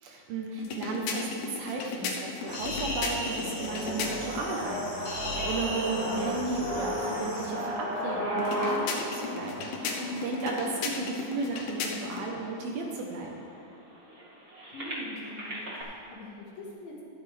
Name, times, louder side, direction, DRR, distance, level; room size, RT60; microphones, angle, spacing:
voice 1, 0.0-9.7 10.2-13.4, right 3 dB, 70° right, 0 dB, 2.7 m, -34 dB
sound 1, 0.6-4.5 8.4-12.3, left 5 dB, 80° left, 2.9 m, -36 dB
sound 2, 2.4-12.3 13.0-13.1 13.4-15.8, equal, 30° right, 1.1 m, -35 dB
sound 3, 2.5-7.5, left 1 dB, 40° left, 3.1 m, -37 dB
voice 2, 9.8-10.2 14.7-17.0, left 1 dB, 65° left, -4 dB, 3.2 m, -42 dB
13.0 x 11.0 x 3.4 m, 2.5 s
omnidirectional pair, 4.7 m